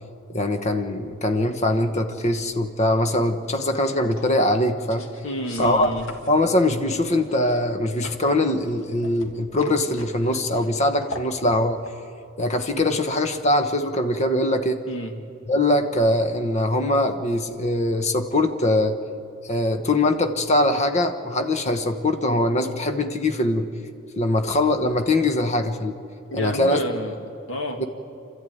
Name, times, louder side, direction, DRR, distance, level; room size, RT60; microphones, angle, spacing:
voice 1, 0.3-5.1 5.6-5.9 6.3-11.8 12.4-14.8 15.5-19.0 19.4-23.7 24.2-25.9 26.3-26.8 27.8-27.9, left 1 dB, 35° left, 7 dB, 1.1 m, -22 dB
sound 1, 2.2-13.3, left 2 dB, 80° left, 1.9 m, -44 dB
voice 2, 5.2-6.1 14.9-15.2 26.3-27.2 27.5-27.9, equal, 65° left, 3 dB, 2.2 m, -29 dB
27.5 x 13.0 x 9.3 m, 2.6 s
head